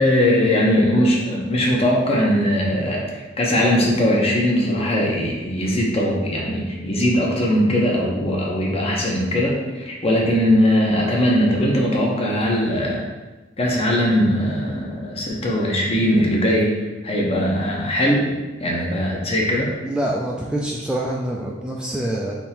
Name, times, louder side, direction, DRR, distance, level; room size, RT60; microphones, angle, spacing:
voice 1, 0.0-13.1 13.6-16.7 17.0-18.3 18.6-19.7, equal, 35° left, -2 dB, 0.8 m, -20 dB
voice 2, 19.8-22.4, right 1 dB, 5° right, -3 dB, 0.3 m, -25 dB
3.6 x 2.8 x 4.3 m, 1.2 s
head